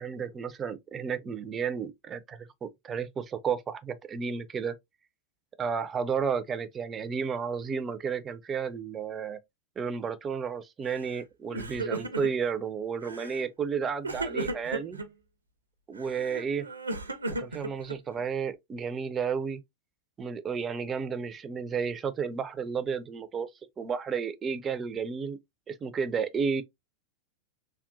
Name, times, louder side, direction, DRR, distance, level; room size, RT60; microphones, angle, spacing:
voice 1, 0.0-4.7 5.6-9.4 9.8-15.0 15.9-16.7 17.4-19.6 20.2-23.5 23.8-25.4 25.7-26.6, right 6 dB, 20° right, 0.4 m, -32 dB
Crying sobbing, 10.9-11.2 11.5-12.5 13.0-13.5 14.0-15.1 16.0-18.2, right 2 dB, 80° right, 0.5 m, -35 dB
3.5 x 2.2 x 2.5 m
figure-of-eight pair, 90°, 0 cm